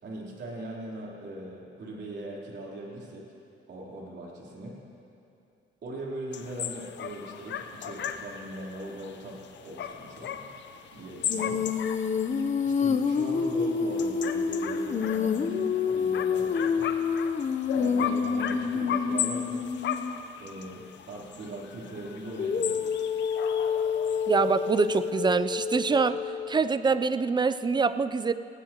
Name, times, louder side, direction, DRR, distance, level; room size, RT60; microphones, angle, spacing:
voice 1, 0.0-3.3 3.6-4.8 5.8-10.5 10.9-11.6 12.6-16.9 17.7-19.6 20.4-23.1, right 1 dB, 60° right, -4 dB, 3.6 m, -40 dB
sound 1, 6.3-25.1, left 8 dB, 65° left, 0.8 m, -37 dB
Female singing, 11.3-20.2 22.4-26.6, left 6 dB, 35° left, 0.7 m, -28 dB
voice 2, 24.3-26.2 26.5-28.3, right 4 dB, 20° right, 13 dB, 0.4 m, -25 dB
19.5 x 16.5 x 3.0 m, 2.6 s
cardioid pair, 90°, 20 cm